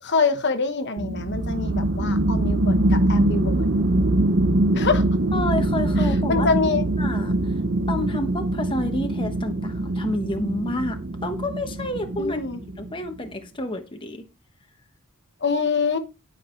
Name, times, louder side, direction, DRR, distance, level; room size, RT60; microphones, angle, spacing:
voice 1, 0.0-3.7 4.7-5.0 6.0-6.9 12.2-12.6 15.4-16.0, left 4 dB, 55° left, 1.2 m, -25 dB
sound 1, 1.0-13.0, right 1 dB, 50° right, 0.9 m, -23 dB
voice 2, 5.3-6.7 7.0-7.5 7.9-12.4 12.8-14.3, left 1 dB, 25° left, 1.1 m, -29 dB
11.5 x 5.4 x 4.4 m
head